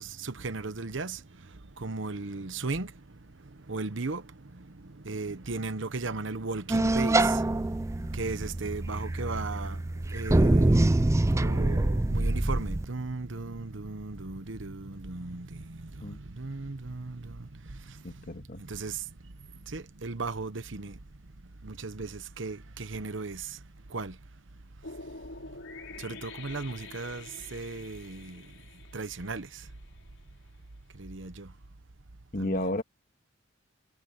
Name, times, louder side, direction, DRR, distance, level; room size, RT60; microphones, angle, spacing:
voice 1, 0.0-21.0 21.4-23.6 23.9-24.2 26.0-28.5 28.9-29.7 30.9-31.5 32.4-32.7, right 3 dB, 70° right, 1.1 m, -37 dB
sound 1, 6.7-12.8, right 2 dB, 15° right, 0.4 m, -25 dB
voice 2, 18.0-18.6 32.3-32.8, left 1 dB, 45° left, 1.8 m, -32 dB
sound 2, 24.8-30.0, left 3 dB, 75° left, 4.7 m, -46 dB
head